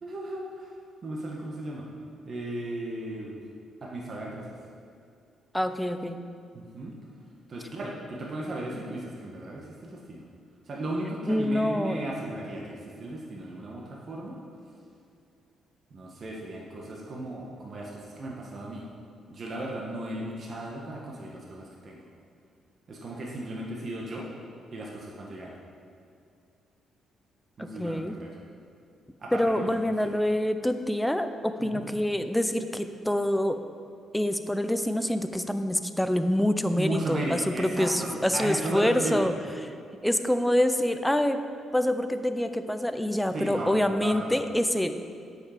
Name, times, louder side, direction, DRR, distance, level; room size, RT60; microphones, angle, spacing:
voice 1, 0.0-0.7 1.0-1.9 2.3-3.4 3.8-4.5 6.5-6.9 7.5-10.2 10.6-14.4 15.9-18.8 19.3-22.0 22.9-24.3 24.7-25.5 27.6-28.3 29.2-29.7 30.0-30.1 31.6-31.9 36.7-39.3 43.3-44.4, right 1 dB, 45° right, -2 dB, 1.4 m, -35 dB
voice 2, 5.5-6.2 11.3-12.0 27.6-28.1 29.3-33.6 34.1-39.3 40.0-41.4 41.7-45.0, left 1 dB, 5° left, 8 dB, 0.5 m, -26 dB
8.4 x 6.6 x 5.0 m, 2.4 s
cardioid pair, 90°, 0 cm